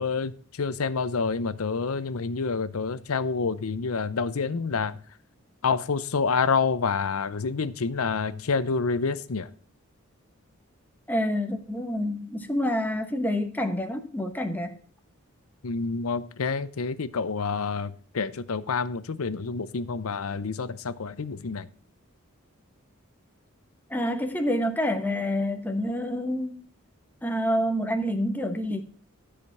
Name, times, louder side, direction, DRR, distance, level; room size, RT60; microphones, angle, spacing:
voice 1, 0.0-4.9 5.6-9.5 15.6-21.7, left 5 dB, 80° left, 0.7 m, -28 dB
voice 2, 11.1-14.7 23.9-26.6 27.2-28.8, equal, 10° left, 1.0 m, -27 dB
12.5 x 5.0 x 5.7 m
head